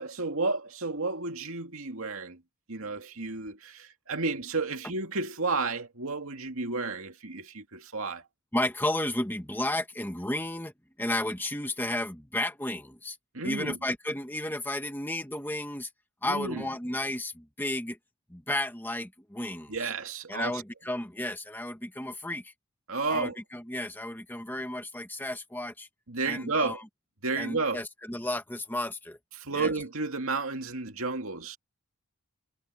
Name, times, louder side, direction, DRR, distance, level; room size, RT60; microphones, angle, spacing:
voice 1, 0.0-2.4 2.7-8.2 13.3-13.8 16.2-16.7 19.7-20.6 22.9-23.4 26.1-26.8 27.2-27.8 29.4-31.6, right 3 dB, 70° right, 2.3 m, -32 dB
voice 2, 8.5-10.7 11.0-13.2 13.4-15.9 16.2-18.0 18.3-19.9 20.3-22.5 23.1-25.9 26.2-26.8 27.3-29.2 29.5-29.7, left 1 dB, 10° left, 1.5 m, -33 dB
head